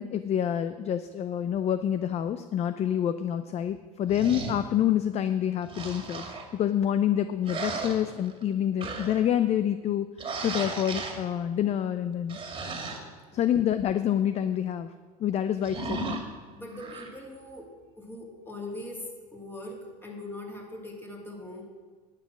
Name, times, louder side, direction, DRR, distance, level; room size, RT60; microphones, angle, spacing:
voice 1, 0.0-6.3 6.5-12.4 13.3-14.9 15.2-16.2, left 10 dB, 30° left, 12 dB, 0.5 m, -27 dB
sound 1, 4.1-4.7 5.6-6.5 7.4-8.4 8.8-9.3 10.2-11.2 12.3-13.0 15.6-16.2 16.7-17.1, right 3 dB, 25° right, 2.3 m, -35 dB
voice 2, 16.5-17.7 18.0-21.6, left 1 dB, 10° left, 1 dB, 2.7 m, -41 dB
11.0 x 9.1 x 6.1 m, 1.5 s
supercardioid pair, 105°, 21 cm